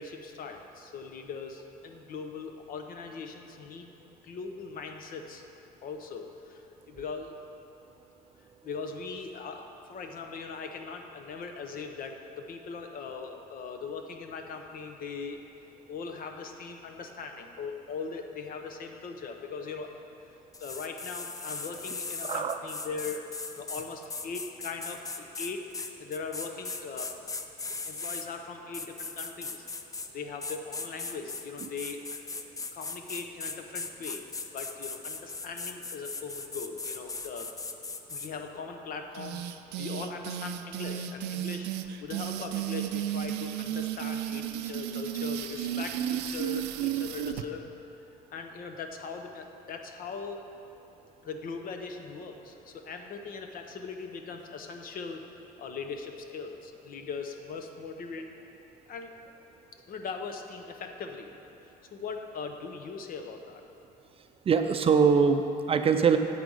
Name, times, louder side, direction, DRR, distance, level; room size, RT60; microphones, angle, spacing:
voice 1, 0.0-3.9 4.2-5.4 5.8-7.3 8.6-15.4 15.9-20.0 20.6-27.1 27.9-29.7 30.1-32.2 32.7-34.3 34.5-37.5 38.1-39.4 39.8-41.7 42.0-47.7 48.3-50.4 51.2-55.3 55.6-58.3 58.9-59.1 59.9-61.3 61.6-63.6, left 5 dB, 55° left, 5 dB, 0.8 m, -40 dB
sound 1, 20.5-28.3 28.7-30.1 30.4-38.3, left 3 dB, 20° left, 0.5 m, -38 dB
voice 2, 22.2-22.6 64.4-66.2, right 6 dB, 35° right, 7 dB, 0.5 m, -23 dB
sound 2, 39.1-47.4, right 11 dB, 85° right, 0.4 m, -33 dB
8.5 x 5.1 x 6.3 m, 2.7 s
cardioid pair, 110°, 17 cm